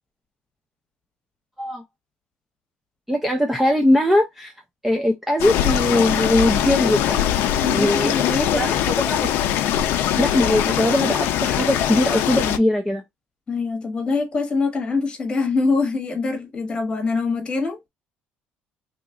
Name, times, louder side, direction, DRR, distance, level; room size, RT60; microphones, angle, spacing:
voice 1, 3.1-4.5 4.8-7.3 7.7-9.3 10.2-13.0, left 1 dB, 5° right, 0.4 m, -21 dB
sound 1, 5.4-12.6, left 11 dB, 75° left, 0.5 m, -22 dB
voice 2, 7.6-8.8 13.5-17.9, left 4 dB, 25° left, 1.1 m, -24 dB
3.0 x 2.4 x 3.6 m
cardioid pair, 155°, 4 cm